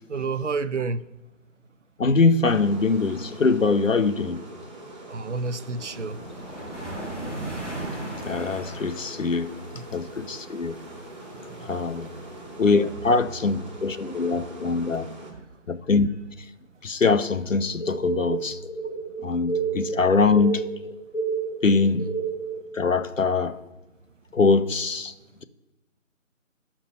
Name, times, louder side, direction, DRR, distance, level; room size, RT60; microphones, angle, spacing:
voice 1, 0.1-1.0 5.0-6.2 9.7-9.9 11.3-11.7 15.3-15.5, right 4 dB, 60° right, 0.6 m, -30 dB
voice 2, 2.0-4.4 8.2-9.5 9.9-10.8 11.6-12.1 12.6-15.1 15.7-16.1 16.8-18.6 19.2-20.6 21.6-22.1 22.7-23.6 24.3-25.1, left 4 dB, 75° left, 0.9 m, -22 dB
sound 1, 2.4-15.3, right 1 dB, 35° right, 2.4 m, -43 dB
sound 2, 5.8-12.9, right 1 dB, 5° left, 2.4 m, -38 dB
sound 3, 17.8-22.6, right 5 dB, 50° left, 1.7 m, -30 dB
11.5 x 5.8 x 5.5 m
figure-of-eight pair, 165°, 39 cm